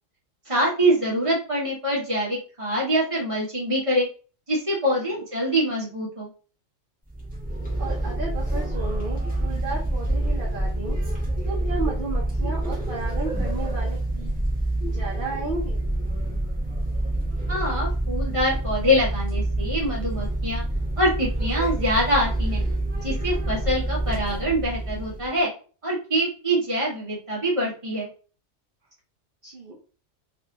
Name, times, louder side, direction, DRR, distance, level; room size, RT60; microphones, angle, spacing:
voice 1, 0.4-4.1 4.5-6.3 17.5-20.6 21.0-22.6 22.9-25.5 25.8-28.1, equal, 25° right, -4 dB, 1.7 m, -24 dB
sound 1, 7.1-25.3, right 1 dB, 5° right, 1.3 m, -27 dB
voice 2, 7.8-11.2 11.4-14.3 14.8-15.8 29.4-29.8, right 3 dB, 50° right, -3 dB, 1.1 m, -34 dB
3.4 x 3.3 x 3.0 m, 0.37 s
omnidirectional pair, 1.2 m